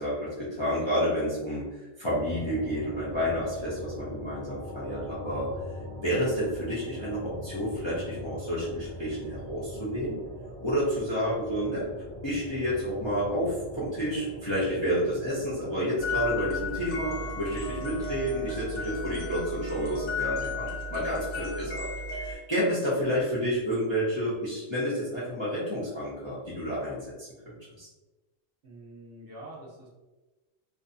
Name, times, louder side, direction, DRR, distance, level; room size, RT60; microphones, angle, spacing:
voice 1, 0.0-1.7 2.0-5.5 6.0-10.2 10.6-11.9 12.2-21.9 22.1-27.9, equal, 35° left, -8 dB, 0.5 m, -30 dB
sound 1, 2.2-19.6, equal, 60° left, 1.1 m, -42 dB
sound 2, 16.0-22.3, left 3 dB, 85° left, 1.0 m, -34 dB
voice 2, 28.6-29.9, right 1 dB, 55° right, -4 dB, 0.9 m, -46 dB
2.6 x 2.2 x 2.6 m, 1.1 s
omnidirectional pair, 1.2 m